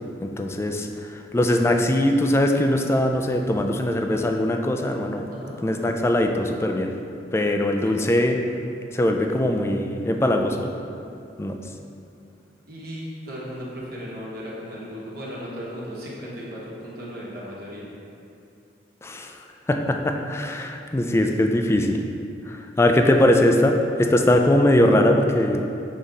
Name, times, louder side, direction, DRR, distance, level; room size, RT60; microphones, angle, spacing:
voice 1, 0.2-0.9 1.3-5.3 5.6-6.9 7.3-8.4 8.9-10.7 11.4-11.6 19.0-19.3 19.7-22.0 22.5-25.6, left 1 dB, 15° left, 4 dB, 0.3 m, -21 dB
voice 2, 12.7-17.9 21.2-21.5, equal, 55° right, -5 dB, 1.3 m, -36 dB
7.0 x 3.7 x 4.0 m, 2.6 s
head